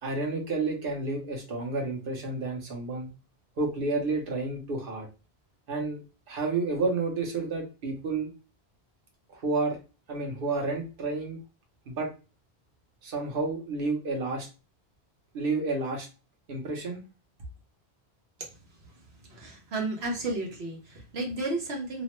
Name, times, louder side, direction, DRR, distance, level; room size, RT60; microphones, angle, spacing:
voice 1, 0.0-3.1 3.6-5.1 5.7-6.0 6.3-8.3 9.3-9.8 10.1-11.4 11.9-12.1 13.0-14.5 15.3-16.1 16.5-17.0, right 3 dB, 60° right, 1 dB, 1.0 m, -30 dB
voice 2, 19.3-22.0, right 2 dB, 80° right, 0 dB, 1.2 m, -33 dB
3.0 x 2.1 x 2.9 m, 0.31 s
omnidirectional pair, 1.1 m